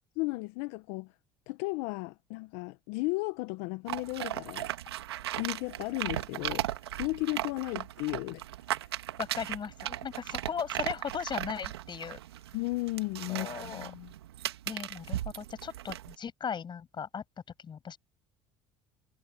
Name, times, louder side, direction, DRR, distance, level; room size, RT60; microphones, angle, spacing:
voice 1, 0.2-1.1 1.5-4.7 5.4-8.4 8.8-8.9 12.5-14.1, left 24 dB, 70° left, 1.1 m, -35 dB
sound 1, 3.9-16.1, right 13 dB, 90° right, 1.8 m, -37 dB
voice 2, 9.2-12.2 13.3-13.9 14.7-17.2 17.6-18.0, left 7 dB, 35° left, 6.4 m, -37 dB
hypercardioid pair, 75°, 13 cm